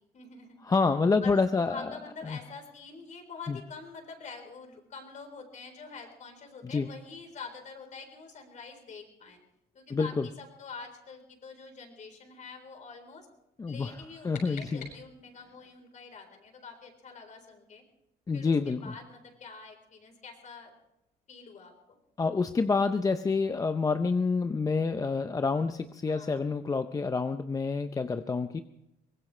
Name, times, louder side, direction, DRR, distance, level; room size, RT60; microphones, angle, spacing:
voice 1, 0.1-0.6 1.2-9.4 9.7-13.3 13.7-17.8 18.3-20.7 21.3-22.0 26.1-26.5, left 4 dB, 45° left, 4 dB, 4.0 m, -46 dB
voice 2, 0.6-1.9 2.3-2.4 3.5-3.6 6.6-6.9 9.9-10.3 13.6-13.9 14.2-14.9 18.3-18.9 22.2-28.6, left 4 dB, 20° left, 9 dB, 0.6 m, -28 dB
sound 1, 13.8-15.5, left 4 dB, 70° left, 7.1 m, -49 dB
23.5 x 19.0 x 3.2 m, 0.84 s
cardioid pair, 110°, 17 cm